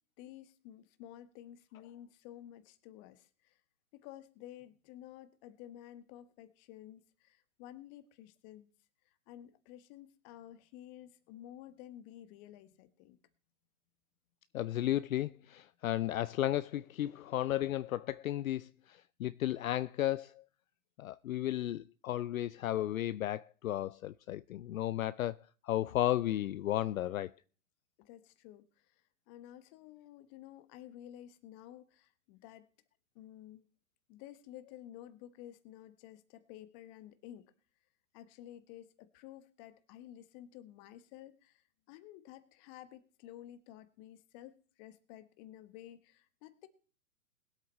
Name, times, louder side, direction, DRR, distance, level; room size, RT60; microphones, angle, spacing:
voice 1, 0.2-3.6 3.9-8.7 9.0-13.2 28.0-32.7 33.1-33.7 34.1-37.5 38.1-46.7, left 12 dB, 30° left, 1.3 m, -52 dB
voice 2, 14.5-20.4 21.0-25.4 25.6-27.3, left 13 dB, 60° left, 0.6 m, -34 dB
20.5 x 8.1 x 4.2 m
hypercardioid pair, 135°, 46 cm